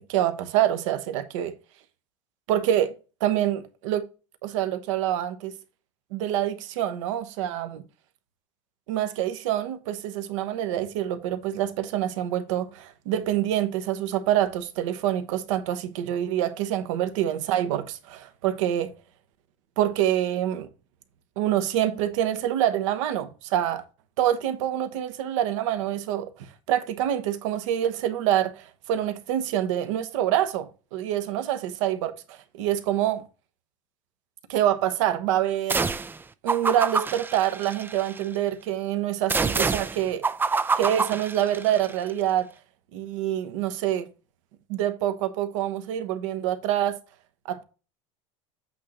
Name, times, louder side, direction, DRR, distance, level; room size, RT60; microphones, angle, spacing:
voice 1, 0.1-1.6 2.5-2.9 3.2-4.0 4.4-5.5 6.1-7.8 8.9-18.9 19.8-20.7 21.4-23.8 24.2-33.2 34.5-35.8 36.4-40.3 40.8-42.5 42.9-44.1 44.7-47.0 47.5-47.6, right 11 dB, 70° right, 1.0 m, -26 dB
sound 1, 35.7-36.2 36.5-38.2 39.3-41.9, right 4 dB, 10° right, 0.4 m, -27 dB
8.4 x 2.9 x 6.2 m
hypercardioid pair, 95°, 17 cm